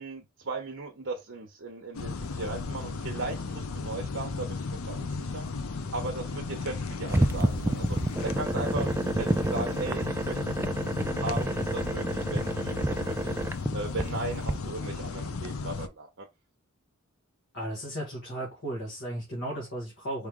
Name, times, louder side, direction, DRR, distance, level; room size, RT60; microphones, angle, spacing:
voice 1, 0.0-5.5 5.9-8.0 8.2-13.4 13.7-16.2, right 3 dB, 60° right, 0.8 m, -37 dB
sound 1, 1.9-15.9, left 4 dB, 80° left, 0.6 m, -35 dB
sound 2, 7.1-14.5, right 1 dB, 10° right, 0.3 m, -29 dB
voice 2, 17.5-20.3, right 1 dB, 60° left, 2.0 m, -35 dB
4.6 x 3.2 x 3.6 m
head